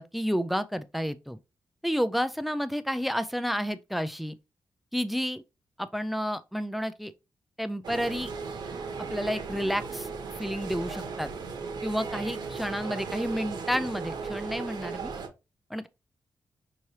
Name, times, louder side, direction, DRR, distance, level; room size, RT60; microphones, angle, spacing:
voice 1, 0.0-1.4 1.8-4.4 4.9-5.4 5.8-7.1 7.6-8.3 9.1-10.1 10.3-11.3 11.8-15.1 15.7-15.9, equal, ahead, 0.3 m, -30 dB
sound 1, 7.8-15.3, right 5 dB, 70° right, 1.0 m, -36 dB
5.8 x 3.2 x 2.7 m
wide cardioid pair, 170°, 8 cm